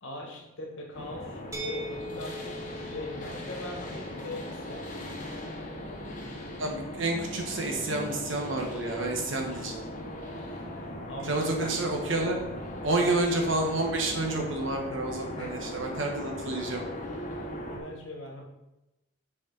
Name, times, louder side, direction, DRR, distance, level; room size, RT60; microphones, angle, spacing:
voice 1, 0.0-2.6 2.8-4.9 10.3-12.3 15.3-15.7 17.7-18.5, left 2 dB, 75° left, 0 dB, 1.6 m, -41 dB
sound 1, 0.9-17.8, left 1 dB, 40° left, 1.1 m, -39 dB
sound 2, 1.5-7.3, right 1 dB, 15° right, 0.6 m, -44 dB
voice 2, 6.6-9.8 11.3-12.4 12.8-16.8, right 2 dB, 70° right, 1 dB, 1.3 m, -29 dB
6.9 x 4.7 x 4.0 m, 0.96 s
head